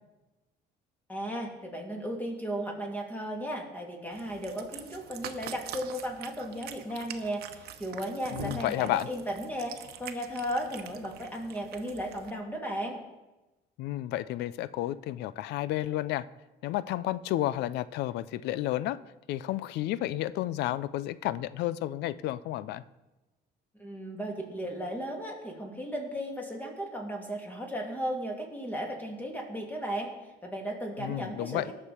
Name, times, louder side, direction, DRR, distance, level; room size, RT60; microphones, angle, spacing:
voice 1, 1.1-13.0 23.8-30.1 30.4-31.7, equal, 10° left, 0 dB, 2.7 m, -35 dB
Cat, 4.1-12.3, right 9 dB, 70° right, 1.0 m, -45 dB
voice 2, 8.3-9.1 13.8-16.2 16.6-19.0 19.3-22.8 31.0-31.7, left 14 dB, 80° left, 17 dB, 0.4 m, -31 dB
18.5 x 6.7 x 4.3 m, 1.1 s
cardioid pair, 110°, 17 cm